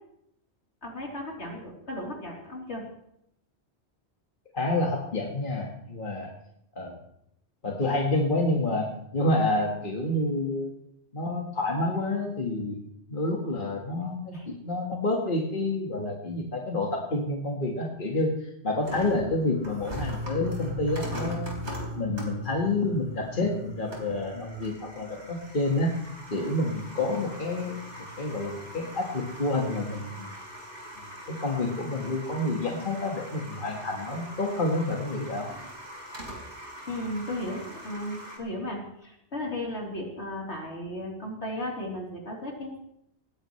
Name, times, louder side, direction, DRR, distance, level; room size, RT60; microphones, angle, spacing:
voice 1, 0.8-2.8 14.3-14.5 36.9-42.8, left 1 dB, 75° left, -2 dB, 3.9 m, -35 dB
voice 2, 4.5-6.3 6.8-7.0 7.6-10.7 11.1-12.8 13.1-21.6 22.0-26.0 26.3-30.3 31.3-35.5, left 2 dB, 50° left, -1 dB, 1.9 m, -28 dB
sound 1, 18.8-38.4, right 1 dB, 85° right, 4.3 m, -43 dB
sound 2, 19.9-31.2, left 2 dB, 60° right, 4.3 m, -41 dB
19.5 x 15.0 x 3.2 m, 0.76 s
omnidirectional pair, 1.2 m